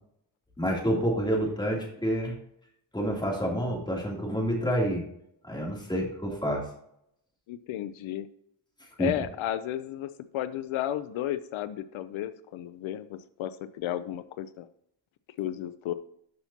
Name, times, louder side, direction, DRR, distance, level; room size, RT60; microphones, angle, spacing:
voice 1, 0.6-2.3 2.9-5.0 5.4-6.7 9.0-9.1, equal, 10° left, -2 dB, 2.9 m, -28 dB
voice 2, 7.5-8.3 9.0-14.7 15.4-15.9, left 12 dB, 85° left, 13 dB, 0.6 m, -33 dB
13.0 x 5.7 x 2.8 m, 0.73 s
cardioid pair, 95°, 47 cm